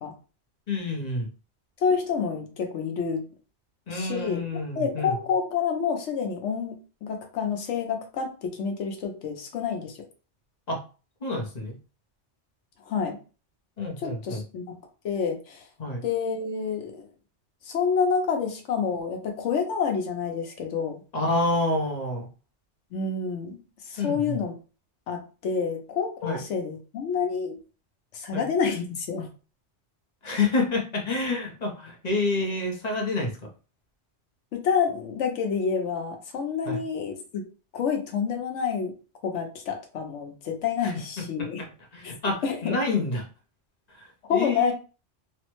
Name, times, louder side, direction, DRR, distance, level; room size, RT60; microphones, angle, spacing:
voice 1, 0.7-1.3 3.9-5.1 10.7-10.8 11.2-11.8 13.8-14.4 15.8-16.0 21.1-22.3 24.0-24.4 26.2-26.4 28.3-28.5 30.2-33.3 36.7-36.8 40.8-40.9 41.4-43.2 44.0-44.7, left 2 dB, 40° left, 1 dB, 0.7 m, -28 dB
voice 2, 1.8-3.3 3.9-4.4 4.8-10.0 12.8-13.2 14.0-14.8 15.0-15.7 16.0-17.1 17.6-21.0 22.9-23.6 23.9-24.5 25.1-27.6 28.1-29.3 34.5-37.4 37.7-38.9 39.2-41.6 42.0-42.1 42.4-43.0 44.2-44.7, left 6 dB, 80° left, 4 dB, 1.0 m, -28 dB
3.2 x 2.1 x 3.0 m, 0.35 s
omnidirectional pair, 1.2 m